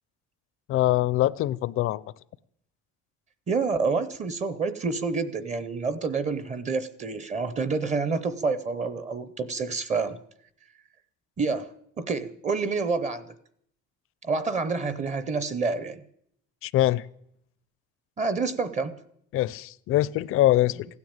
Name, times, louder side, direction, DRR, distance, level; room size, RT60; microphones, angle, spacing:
voice 1, 0.7-2.0 16.6-17.0 19.3-20.9, left 14 dB, 45° left, 0.5 m, -23 dB
voice 2, 3.5-10.2 11.4-11.7 12.0-13.3 14.2-16.0 18.2-18.9, right 4 dB, 25° right, 0.7 m, -28 dB
16.0 x 9.5 x 8.8 m
cardioid pair, 170°, 29 cm